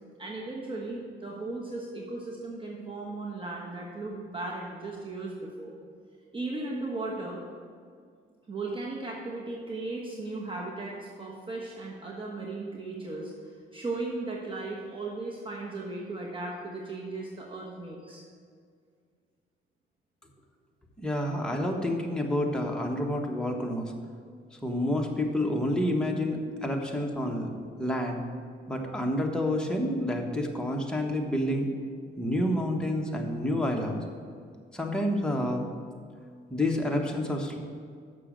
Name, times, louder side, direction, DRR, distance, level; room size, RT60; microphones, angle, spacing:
voice 1, 0.2-5.7 6.3-7.4 8.5-18.3 26.8-26.9, right 2 dB, 25° right, -3 dB, 1.2 m, -36 dB
voice 2, 21.0-23.9 24.5-27.5 27.8-28.2 28.7-31.7 32.2-34.0 34.7-35.6 36.5-37.6, left 1 dB, 5° left, 0 dB, 1.3 m, -29 dB
6.7 x 6.3 x 7.5 m, 2.1 s
cardioid pair, 90°, 20 cm